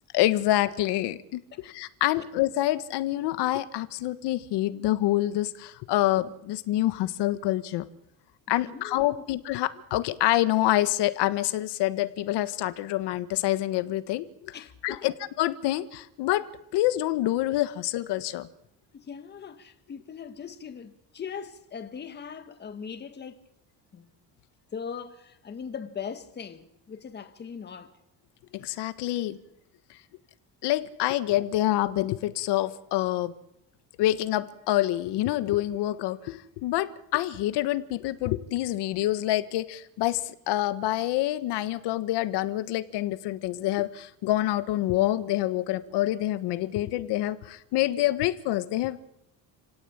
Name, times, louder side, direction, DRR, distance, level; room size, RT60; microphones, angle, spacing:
voice 1, 0.1-7.8 8.5-14.2 14.8-16.5 16.7-18.5 28.5-29.4 30.6-33.3 34.0-49.1, left 15 dB, 85° left, 1.5 m, -27 dB
voice 2, 8.6-9.3 14.5-15.1 18.9-23.4 23.9-24.1 24.7-27.9, left 6 dB, 25° left, 1.7 m, -40 dB
29.5 x 17.5 x 8.8 m
cardioid pair, 170°, 40 cm